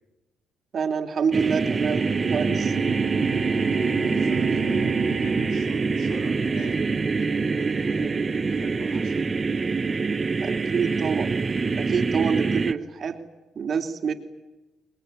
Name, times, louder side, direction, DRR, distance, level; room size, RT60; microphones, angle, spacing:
voice 1, 0.7-2.7 10.4-11.3 11.7-13.2 13.5-14.1, right 6 dB, 50° right, 5 dB, 3.0 m, -26 dB
sound 1, 1.3-12.7, right 4 dB, 30° right, 1.1 m, -25 dB
Bowed string instrument, 1.3-6.7, right 15 dB, 90° right, 0.9 m, -36 dB
voice 2, 3.9-8.1 8.4-9.3, left 2 dB, 90° left, 6 dB, 6.6 m, -44 dB
25.5 x 21.0 x 9.9 m, 1.1 s
cardioid pair, 90°, 0 cm